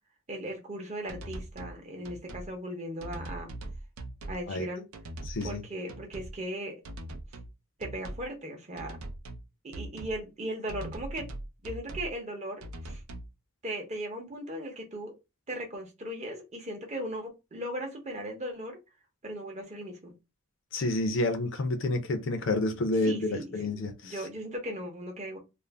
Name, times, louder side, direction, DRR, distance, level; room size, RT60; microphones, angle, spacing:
voice 1, 0.3-3.5 4.3-4.8 5.4-6.8 7.8-9.0 9.6-11.3 11.6-13.0 13.6-15.1 15.5-18.8 19.2-20.1 23.0-23.5 23.7-25.4, right 1 dB, 30° right, 0.7 m, -37 dB
sound 1, 1.1-1.8 2.0-2.5 3.0-4.4 4.9-5.6 5.9-6.4 6.8-7.5 7.8-8.3 8.8-9.4 9.7-10.2 10.7-12.1 12.6-13.3, right 1 dB, 70° right, 0.5 m, -41 dB
voice 2, 5.3-5.6 20.7-24.2, left 2 dB, 55° left, 0.5 m, -29 dB
2.4 x 2.0 x 3.2 m
head